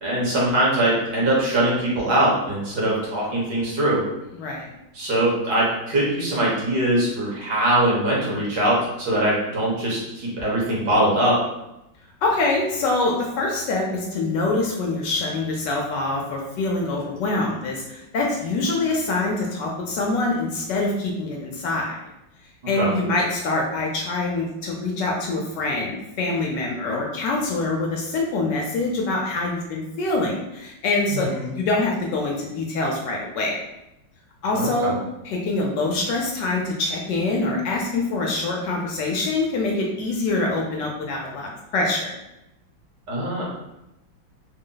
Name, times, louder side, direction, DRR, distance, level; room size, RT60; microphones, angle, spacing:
voice 1, 0.0-4.0 4.9-11.4 22.8-23.0 31.1-31.5 34.5-35.0 43.1-43.4, right 1 dB, 65° right, -5 dB, 1.7 m, -22 dB
voice 2, 4.3-4.7 12.2-22.0 22.7-31.3 31.5-33.6 34.4-34.9 35.2-42.1, left 2 dB, 70° left, -1 dB, 1.2 m, -25 dB
3.9 x 2.0 x 3.8 m, 0.89 s
omnidirectional pair, 2.1 m